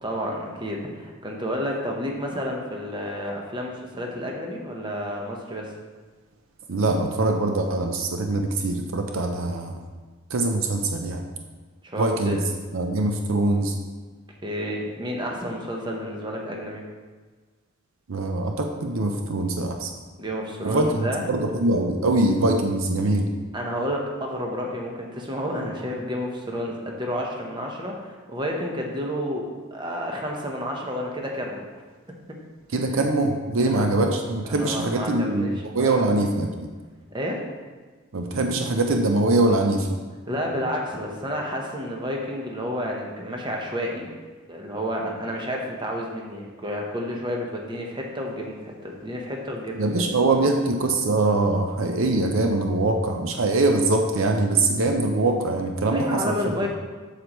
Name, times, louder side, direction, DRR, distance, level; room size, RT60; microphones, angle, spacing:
voice 1, 0.0-5.7 11.8-12.4 14.4-16.8 20.2-21.6 23.5-31.7 33.6-33.9 34.5-36.1 37.1-37.5 40.3-44.1 44.5-50.0 55.9-56.7, equal, 20° right, 0 dB, 0.9 m, -30 dB
voice 2, 6.7-9.7 10.3-11.2 12.0-12.4 12.7-13.7 18.1-19.9 20.6-23.3 32.7-36.7 38.1-40.0 49.8-56.3, right 2 dB, 70° right, 4 dB, 0.5 m, -23 dB
7.7 x 6.6 x 3.0 m, 1.4 s
head